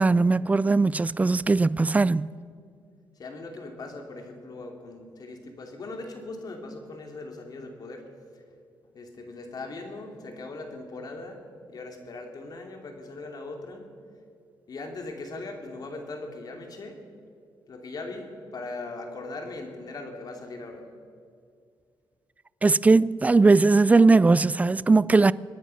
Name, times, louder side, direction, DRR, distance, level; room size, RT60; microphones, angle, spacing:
voice 1, 0.0-2.3 22.6-25.3, right 3 dB, 20° right, 0.3 m, -19 dB
voice 2, 3.2-8.0 8.3-8.4 8.9-11.4 11.7-13.9 14.7-17.0 17.7-20.8, left 2 dB, 50° left, 2.7 m, -39 dB
24.5 x 10.0 x 5.8 m
cardioid pair, 95°, 8 cm